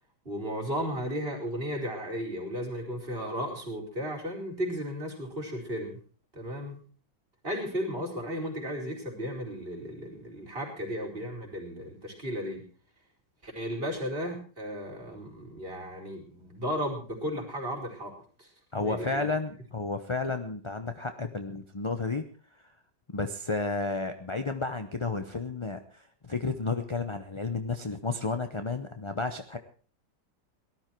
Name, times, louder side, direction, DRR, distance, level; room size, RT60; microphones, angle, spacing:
voice 1, 0.2-6.0 6.3-6.8 7.4-12.6 13.4-18.5 18.7-19.3, equal, 30° right, -2 dB, 4.7 m, -35 dB
voice 2, 18.7-22.2 23.1-29.6, left 3 dB, 30° left, 8 dB, 0.6 m, -32 dB
18.5 x 12.5 x 4.5 m, 0.39 s
omnidirectional pair, 1.9 m